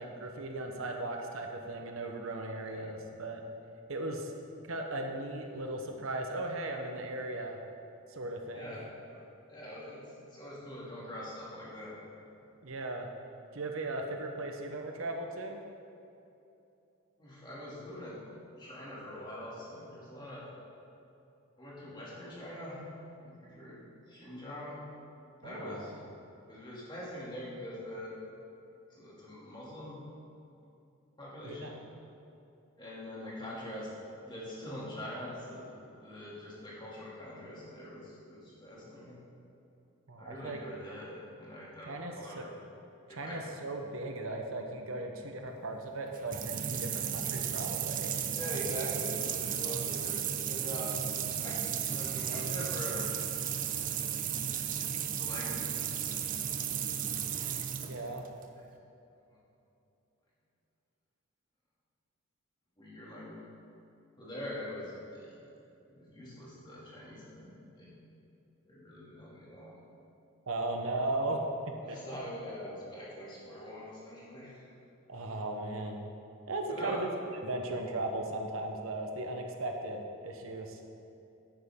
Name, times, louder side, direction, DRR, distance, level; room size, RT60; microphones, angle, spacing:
voice 1, 0.0-3.4 3.9-4.3 4.6-7.6 8.1-8.7 12.6-13.1 13.5-15.6 25.4-26.1 31.4-31.8 40.1-40.6 41.8-42.5 43.1-48.1 57.8-58.2 70.5-71.4 71.9-72.0 75.1-76.0 76.5-77.1 77.4-80.8, right 2 dB, 70° right, 3 dB, 0.9 m, -37 dB
voice 2, 2.7-3.0 8.5-9.2 9.5-12.0 17.2-18.2 18.6-20.5 21.6-22.9 23.2-23.8 24.1-24.8 25.4-25.9 26.5-28.2 28.9-30.0 31.2-31.8 32.8-33.9 34.2-35.7 36.0-39.2 40.2-42.5 43.1-43.5 48.3-50.2 50.5-51.0 51.4-53.2 55.2-56.2 62.8-63.4 64.2-65.3 65.9-67.9 68.6-69.8 71.8-74.7 76.7-77.0, equal, 20° left, -7 dB, 2.4 m, -43 dB
sound 1, 46.0-58.4, right 8 dB, 40° right, 0.5 m, -34 dB
11.0 x 9.0 x 3.6 m, 2.8 s
head